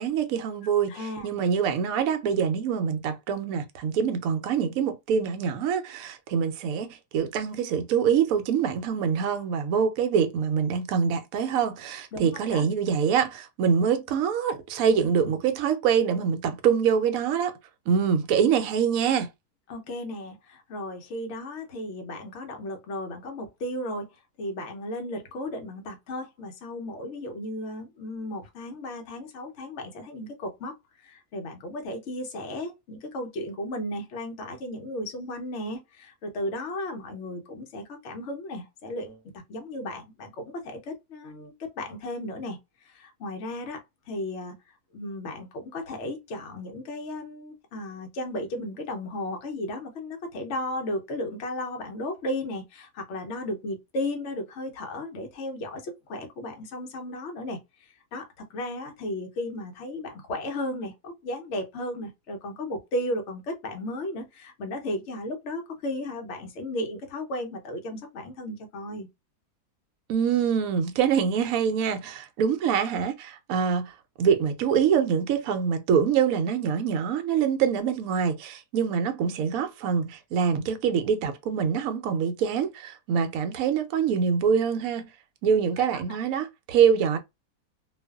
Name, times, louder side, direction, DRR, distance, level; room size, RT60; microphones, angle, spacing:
voice 1, 0.0-17.6 17.9-19.3 70.1-85.1 85.4-87.2, right 7 dB, 70° right, 1.0 m, -25 dB
voice 2, 0.9-1.3 12.1-12.6 19.7-24.1 24.4-43.8 44.1-44.6 44.9-69.1 85.9-86.0, left 1 dB, 55° left, 0.9 m, -35 dB
2.6 x 2.4 x 2.3 m
omnidirectional pair, 1.6 m